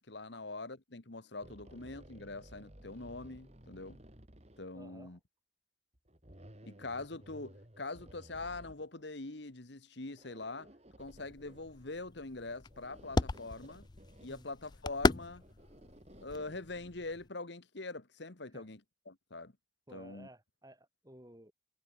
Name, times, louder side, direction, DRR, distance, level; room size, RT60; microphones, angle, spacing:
voice 1, 0.0-4.0 4.6-5.2 6.6-10.7 11.0-13.9 14.2-15.4 16.2-18.8 19.1-19.5 19.9-20.3, left 3 dB, 65° left, 1.6 m, -43 dB
sound 1, 1.4-4.7 5.9-9.4 10.1-11.7 12.4-14.3 14.6-14.7 15.0-16.7, equal, 35° right, 4.4 m, -56 dB
voice 2, 4.7-5.2 14.3-14.5 18.5-18.7 19.9-21.5, right 1 dB, 20° right, 6.8 m, -55 dB
sound 2, 11.0-17.3, left 3 dB, 20° left, 0.4 m, -37 dB
head